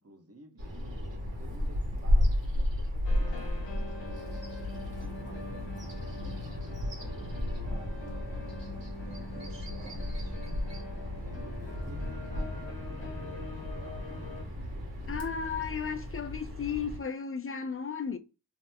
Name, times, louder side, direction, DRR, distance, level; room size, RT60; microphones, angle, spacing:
voice 1, 0.0-4.4 4.8-10.2 10.9-14.4 15.0-15.2, right 2 dB, 35° right, 0.8 m, -54 dB
Bird vocalization bird call bird song, 0.6-17.0, left 1 dB, 85° right, 1.3 m, -34 dB
sound 1, 3.0-14.4, left 2 dB, 85° left, 1.0 m, -44 dB
voice 2, 15.1-18.2, left 6 dB, 35° left, 0.4 m, -34 dB
2.9 x 2.0 x 3.3 m
wide cardioid pair, 50°, 43 cm